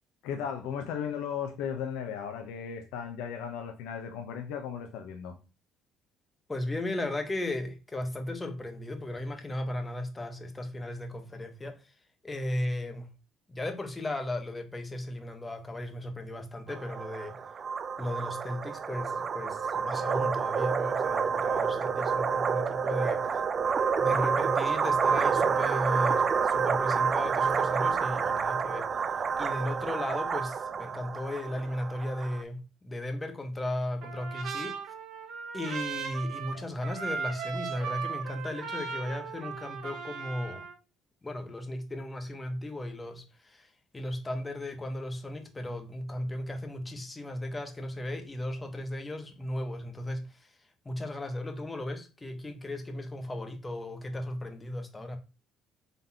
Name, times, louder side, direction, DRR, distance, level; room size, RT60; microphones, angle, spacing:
voice 1, 0.2-5.4, left 7 dB, 80° left, 0.6 m, -36 dB
voice 2, 6.5-11.8 12.2-13.1 13.5-17.4 18.0-23.4 24.0-28.9 29.4-34.8 35.5-40.6 41.2-50.5 50.8-55.2, left 1 dB, 20° left, 1.0 m, -36 dB
sound 1, 16.7-32.4, right 6 dB, 45° right, 0.4 m, -29 dB
Trumpet, 34.0-40.7, right 6 dB, 70° right, 0.8 m, -37 dB
4.0 x 3.4 x 2.8 m
supercardioid pair, 65°, 0 cm